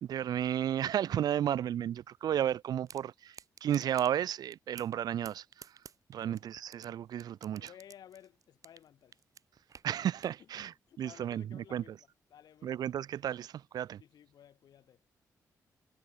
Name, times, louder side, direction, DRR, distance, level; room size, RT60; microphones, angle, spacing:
voice 1, 0.0-3.3 3.6-5.4 6.1-7.7 9.8-11.8 12.6-14.0, right 10 dB, 75° right, 0.7 m, -33 dB
sound 1, 2.9-3.0 3.3-4.1 4.5-5.0 5.3-6.9 7.2-8.9 9.1-10.4, right 7 dB, 55° right, 2.6 m, -51 dB
voice 2, 6.1-6.4 7.6-9.2 10.4-10.5 10.9-12.8 14.0-15.0, left 10 dB, 80° left, 3.8 m, -56 dB
cardioid pair, 85°, 7 cm